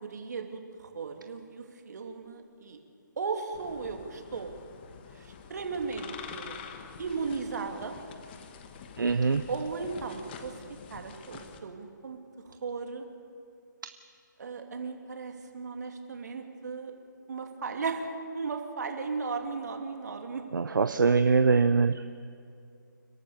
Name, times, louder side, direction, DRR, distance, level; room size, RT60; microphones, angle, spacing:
voice 1, 0.0-2.8 3.2-4.5 5.2-6.6 7.0-7.9 9.5-10.5 10.9-12.2 12.4-13.0 14.4-16.9 17.3-18.1 18.3-20.4, right 4 dB, 55° right, 3 dB, 2.7 m, -36 dB
sound 1, 3.5-11.6, left 6 dB, 30° left, 1.2 m, -47 dB
voice 2, 9.0-9.4 20.5-22.0, right 4 dB, 75° right, 10 dB, 0.7 m, -23 dB
29.5 x 12.5 x 7.0 m, 2.4 s
figure-of-eight pair, 150°, 11 cm